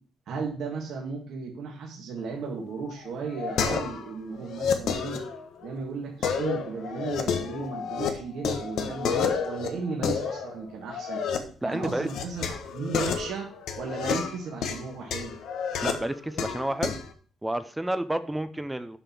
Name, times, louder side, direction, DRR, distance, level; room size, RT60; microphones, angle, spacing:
voice 1, 0.3-5.2 5.6-11.2 11.6-15.3, right 4 dB, 70° right, -1 dB, 1.9 m, -35 dB
sound 1, 2.7-4.1 4.4-5.7 6.2-8.1 8.4-11.4 11.8-17.1, left 7 dB, 75° left, 1.3 m, -30 dB
voice 2, 11.6-12.1 15.8-17.0 17.4-19.0, right 1 dB, 10° right, 11 dB, 0.7 m, -30 dB
7.0 x 5.7 x 7.1 m, 0.43 s
cardioid pair, 95°, 0 cm